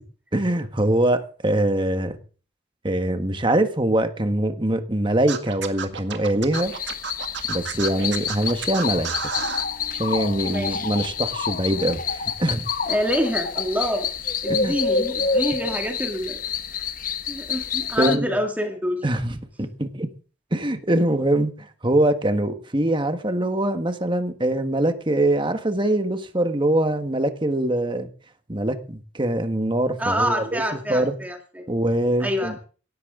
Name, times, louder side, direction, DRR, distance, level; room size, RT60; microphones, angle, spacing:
voice 1, 0.3-2.2 2.8-6.7 7.5-9.1 9.9-12.6 14.5-14.7 18.0-18.3 19.0-20.1 20.5-21.5 21.8-28.1 28.5-30.6 30.9-31.1 31.7-32.5, right 1 dB, 25° right, 8 dB, 1.4 m, -23 dB
Scratching (performance technique), 5.3-9.7, right 7 dB, 60° right, 1.9 m, -31 dB
sound 1, 6.5-18.2, left 6 dB, 45° left, 1.1 m, -28 dB
voice 2, 10.5-10.8 12.9-14.1 14.4-16.4 16.7-16.9 17.2-19.1 30.0-31.7 32.2-32.7, equal, 10° right, 3 dB, 2.1 m, -27 dB
18.0 x 13.5 x 3.8 m, 0.38 s
head